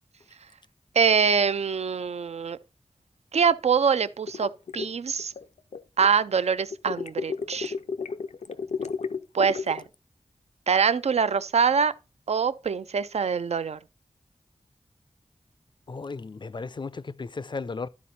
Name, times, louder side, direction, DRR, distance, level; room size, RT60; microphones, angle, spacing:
voice 1, 1.0-2.6 3.3-5.3 6.0-7.7 9.3-9.8 10.7-11.9 12.3-13.8, right 6 dB, 70° right, 0.4 m, -24 dB
sound 1, 4.3-6.1 6.7-9.8, left 5 dB, 90° left, 0.6 m, -32 dB
voice 2, 15.9-17.9, left 4 dB, 45° left, 0.4 m, -35 dB
11.5 x 4.2 x 4.2 m
wide cardioid pair, 75°, 11 cm